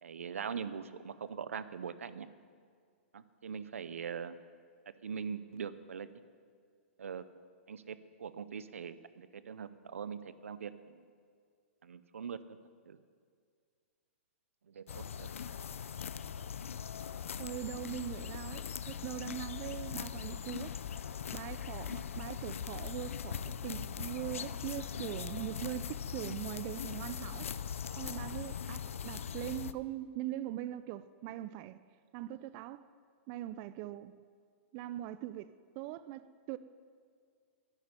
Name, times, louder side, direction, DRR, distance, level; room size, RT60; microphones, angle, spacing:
voice 1, 0.0-2.3 3.1-4.4 5.0-6.1 7.0-7.2 7.7-11.1 11.8-12.6 12.9-13.0 14.7-15.3, right 6 dB, 85° right, 0.7 m, -42 dB
sound 1, 14.9-29.7, left 7 dB, 85° left, 0.5 m, -40 dB
voice 2, 17.4-20.7 21.3-27.5 27.9-31.8 32.1-32.9 33.3-34.2 34.7-36.6, right 14 dB, 40° right, 0.4 m, -41 dB
10.5 x 8.0 x 9.7 m
hypercardioid pair, 130°, 7 cm